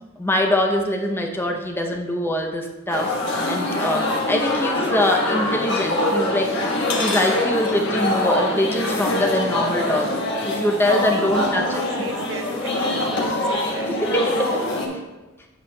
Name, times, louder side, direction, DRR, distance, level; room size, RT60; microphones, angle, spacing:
voice 1, 0.2-3.2 3.5-11.6 13.9-14.6, left 1 dB, 10° left, 1 dB, 0.6 m, -23 dB
sound 1, 2.9-14.9, left 1 dB, 55° left, 1.3 m, -24 dB
voice 2, 10.8-13.9, right 2 dB, 55° right, 5 dB, 0.6 m, -32 dB
8.3 x 6.7 x 2.2 m, 1.1 s
head